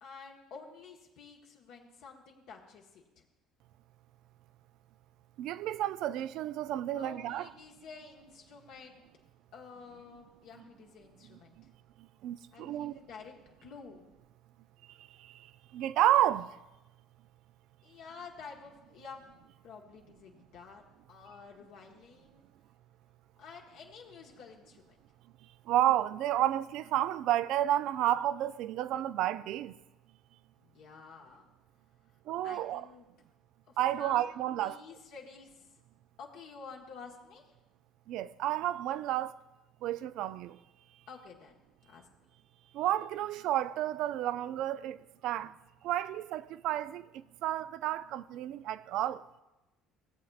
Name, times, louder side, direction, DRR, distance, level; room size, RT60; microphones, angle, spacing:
voice 1, 0.0-3.2 6.9-9.0 9.5-11.6 12.5-14.1 17.8-19.3 19.6-22.5 23.4-25.0 30.6-31.5 32.4-33.1 33.7-35.7 36.2-37.5 41.1-42.1, left 5 dB, 70° left, 1.3 m, -50 dB
voice 2, 5.4-7.5 11.6-11.7 12.0-13.0 14.9-16.6 25.4-29.8 32.3-32.9 33.8-34.8 38.1-39.4 39.8-40.6 42.7-45.0 45.2-45.6 45.8-49.2, right 13 dB, 65° right, 0.3 m, -31 dB
17.0 x 7.5 x 2.4 m
hypercardioid pair, 65°, 0 cm